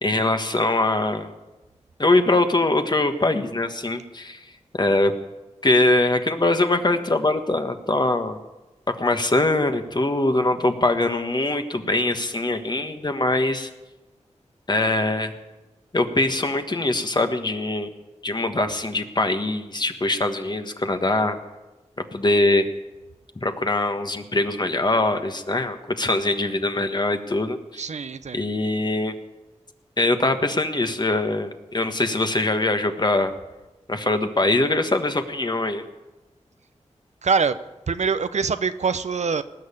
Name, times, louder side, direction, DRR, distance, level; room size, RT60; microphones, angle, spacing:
voice 1, 0.0-1.3 2.0-4.4 4.7-5.1 5.6-8.4 8.9-13.7 14.7-15.3 15.9-17.9 18.2-21.4 22.1-22.7 23.4-27.8 28.3-29.1 30.0-33.3 33.9-35.8, left 2 dB, 35° left, 7 dB, 1.5 m, -22 dB
voice 2, 27.8-28.4 37.2-37.6 37.9-39.4, right 5 dB, 70° right, 12 dB, 0.7 m, -24 dB
19.0 x 6.6 x 9.8 m, 1.1 s
cardioid pair, 55°, 12 cm